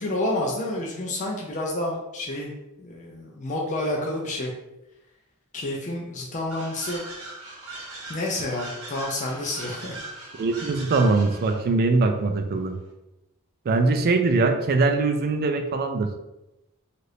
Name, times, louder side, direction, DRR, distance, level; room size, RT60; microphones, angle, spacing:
voice 1, 0.0-2.5 2.8-4.5 5.5-7.0 8.1-9.9, left 1 dB, 35° left, -1 dB, 0.4 m, -29 dB
sound 1, 6.5-11.7, right 2 dB, 75° right, 0.8 m, -40 dB
voice 2, 10.4-12.8 13.7-16.1, right 3 dB, 45° right, 6 dB, 0.3 m, -22 dB
2.7 x 2.4 x 3.2 m, 0.94 s
head